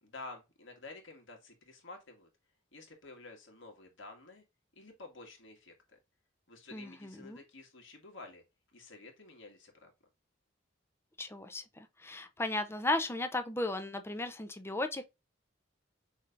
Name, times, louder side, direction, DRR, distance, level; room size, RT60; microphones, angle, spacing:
voice 1, 0.0-2.3 2.7-4.4 4.8-6.0 6.5-8.4 8.7-9.9, left 3 dB, 70° left, 1.8 m, -51 dB
voice 2, 6.7-7.4 11.2-15.0, left 2 dB, 10° left, 0.5 m, -35 dB
6.3 x 3.2 x 2.4 m
head